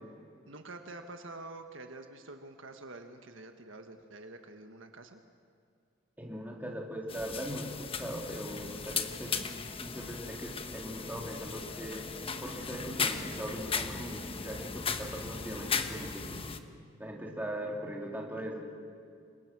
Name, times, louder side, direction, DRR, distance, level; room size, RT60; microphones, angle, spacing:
voice 1, 0.4-5.2, right 2 dB, 70° right, 6 dB, 1.6 m, -47 dB
voice 2, 6.2-9.4 9.8-12.1 12.4-16.4 17.0-18.7, equal, 10° right, -1 dB, 3.6 m, -40 dB
sound 1, 7.1-16.6, left 5 dB, 30° left, 1.1 m, -37 dB
29.0 x 24.5 x 6.2 m, 2.3 s
head